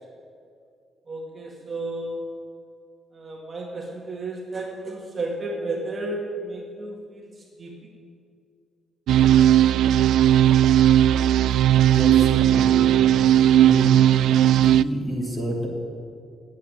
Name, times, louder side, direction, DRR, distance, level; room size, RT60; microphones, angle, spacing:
voice 1, 1.1-2.5 3.1-7.8, right 2 dB, 25° right, -2 dB, 2.0 m, -33 dB
sound 1, 9.1-14.8, right 11 dB, 85° right, 0.3 m, -17 dB
voice 2, 11.9-13.0 13.6-14.0 14.5-15.7, equal, 5° left, -1 dB, 2.6 m, -30 dB
16.0 x 9.2 x 9.5 m, 2.4 s
cardioid pair, 170°, 0 cm